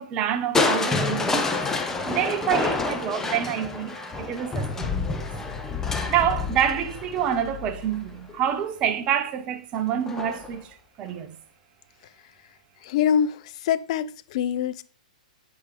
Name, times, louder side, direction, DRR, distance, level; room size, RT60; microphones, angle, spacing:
voice 1, 0.0-1.7 2.0-5.1 6.1-11.4, right 9 dB, 30° right, 0.8 m, -27 dB
Crushing, 0.5-8.5 10.1-10.6 11.1-11.2, left 3 dB, 10° left, 0.7 m, -28 dB
voice 2, 12.8-14.8, left 8 dB, 50° left, 0.5 m, -25 dB
8.2 x 5.1 x 3.1 m
hypercardioid pair, 130°, 4 cm